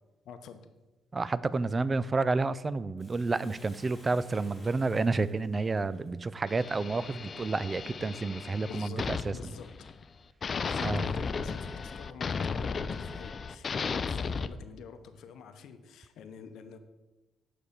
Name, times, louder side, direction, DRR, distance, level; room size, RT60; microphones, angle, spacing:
voice 1, 0.2-0.7 8.6-9.9 10.5-16.8, left 6 dB, 75° left, 0.7 m, -47 dB
voice 2, 1.1-9.3 10.8-11.1, right 3 dB, 30° right, 0.3 m, -30 dB
Bathtub (filling or washing), 3.0-7.5 8.0-8.1, left 1 dB, 5° left, 2.0 m, -58 dB
sound 1, 6.5-10.1 10.4-14.5, left 5 dB, 45° left, 0.4 m, -35 dB
6.9 x 4.9 x 5.6 m
cardioid pair, 90°, 0 cm